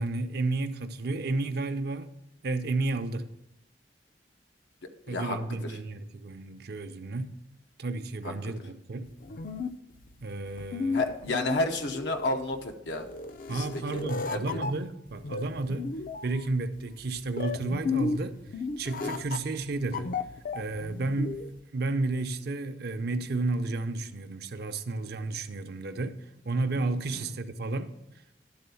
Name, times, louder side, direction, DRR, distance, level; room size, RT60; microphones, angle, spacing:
voice 1, 0.0-2.1 2.4-3.3 5.1-7.4 7.8-9.1 10.2-11.0 13.5-16.0 16.2-18.4 18.8-20.1 20.5-21.4 21.7-26.2 26.4-27.9, right 2 dB, 60° right, 0.6 m, -32 dB
voice 2, 5.1-5.8 8.2-8.3 10.9-13.1 13.5-14.0 14.3-14.6 27.1-27.3, left 2 dB, 85° left, 0.8 m, -31 dB
sound 1, 9.1-21.6, left 4 dB, 50° left, 0.5 m, -34 dB
11.5 x 3.8 x 6.9 m
head